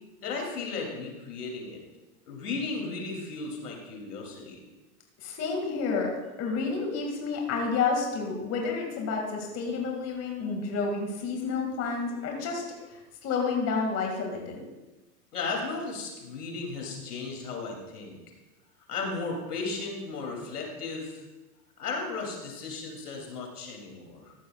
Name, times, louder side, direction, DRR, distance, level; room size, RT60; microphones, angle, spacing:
voice 1, 0.2-1.8 2.3-4.6 15.3-18.2 18.9-21.2 21.8-24.3, left 3 dB, 85° left, 1 dB, 3.1 m, -35 dB
voice 2, 5.2-6.1 6.4-14.6, left 4 dB, 35° left, 1 dB, 2.2 m, -30 dB
15.0 x 11.5 x 2.4 m, 1.1 s
hypercardioid pair, 115°, 45 cm